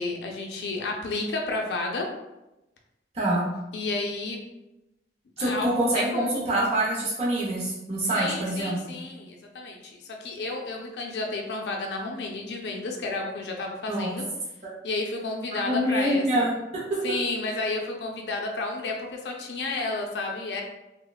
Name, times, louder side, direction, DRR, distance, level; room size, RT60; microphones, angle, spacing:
voice 1, 0.0-2.1 3.7-4.4 5.4-6.3 8.1-14.3 14.8-16.5 17.0-20.6, left 3 dB, 70° left, 1 dB, 0.4 m, -31 dB
voice 2, 3.1-3.4 5.4-8.8 13.9-14.1 14.6-14.8 15.5-17.0, right 1 dB, 35° right, -6 dB, 0.6 m, -26 dB
3.1 x 2.1 x 2.3 m, 0.95 s
head